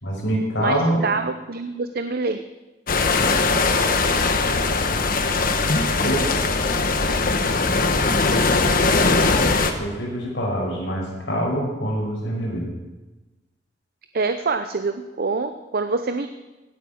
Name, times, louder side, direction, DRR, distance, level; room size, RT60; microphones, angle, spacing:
voice 1, 0.0-1.1 6.0-6.4 9.8-12.7, equal, 85° left, -2 dB, 5.3 m, -25 dB
voice 2, 0.6-2.4 14.1-16.3, right 4 dB, 55° right, 9 dB, 0.7 m, -25 dB
sound 1, 2.9-9.7, left 3 dB, 50° left, 1.2 m, -20 dB
17.0 x 8.6 x 6.5 m, 1.1 s
head